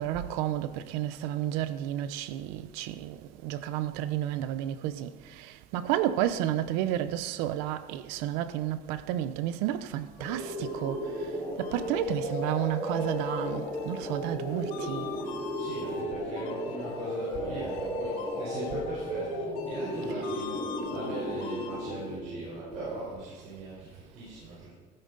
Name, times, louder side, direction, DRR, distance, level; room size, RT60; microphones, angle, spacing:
voice 1, 0.0-11.0 11.6-15.1, right 12 dB, 90° right, 0.8 m, -31 dB
sound 1, 10.2-21.9, left 7 dB, 65° left, 2.0 m, -44 dB
sound 2, 10.2-23.0, equal, 15° left, 4.0 m, -35 dB
voice 2, 15.5-24.7, right 3 dB, 50° right, 4.4 m, -39 dB
14.5 x 13.0 x 4.1 m
cardioid pair, 180°, 16 cm